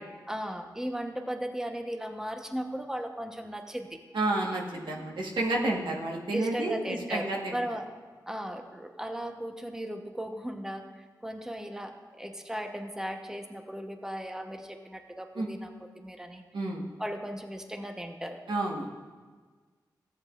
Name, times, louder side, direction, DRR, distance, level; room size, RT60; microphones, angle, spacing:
voice 1, 0.3-4.0 6.3-7.9 8.3-16.4 17.0-18.4, equal, 5° right, 5 dB, 0.9 m, -37 dB
voice 2, 4.1-7.6 15.3-15.5 16.5-16.8 18.5-18.9, right 2 dB, 85° right, -1 dB, 1.4 m, -30 dB
13.5 x 9.5 x 2.5 m, 1.4 s
cardioid pair, 45°, 8 cm